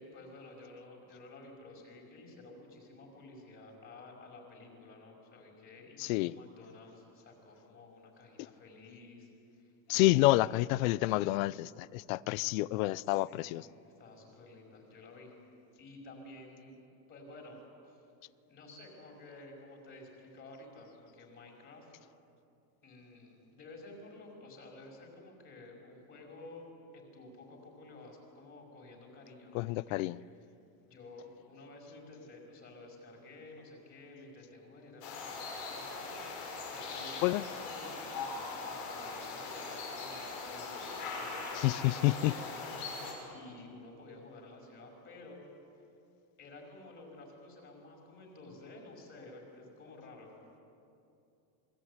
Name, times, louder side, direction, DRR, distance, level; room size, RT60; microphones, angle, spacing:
voice 1, 0.0-9.3 9.6-10.4 13.0-13.6 13.8-15.3 15.8-16.8 17.1-18.0 18.5-21.9 22.8-30.5 30.8-36.1 36.6-40.9 41.1-42.5 42.8-45.4 46.4-50.4, left 2 dB, 25° left, 5.7 m, -52 dB
voice 2, 6.0-6.3 9.9-13.6 29.5-30.2 37.2-37.4 41.6-42.3, left 18 dB, 60° left, 0.6 m, -28 dB
sound 1, 35.0-43.1, left 4 dB, 85° left, 7.0 m, -41 dB
27.0 x 21.0 x 9.7 m
supercardioid pair, 165°, 47 cm